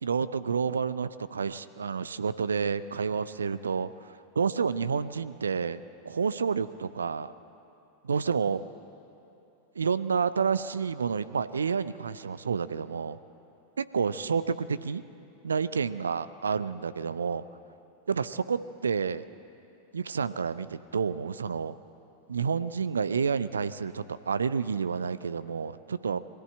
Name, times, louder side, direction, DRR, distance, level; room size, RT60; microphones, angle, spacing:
voice 1, 0.0-7.3 8.0-8.6 9.8-13.2 13.8-15.0 15.4-17.4 18.1-19.3 19.9-21.8 22.3-26.2, right 6 dB, 70° right, 15 dB, 0.5 m, -29 dB
22.5 x 15.0 x 8.1 m, 2.8 s
figure-of-eight pair, 90°, 0 cm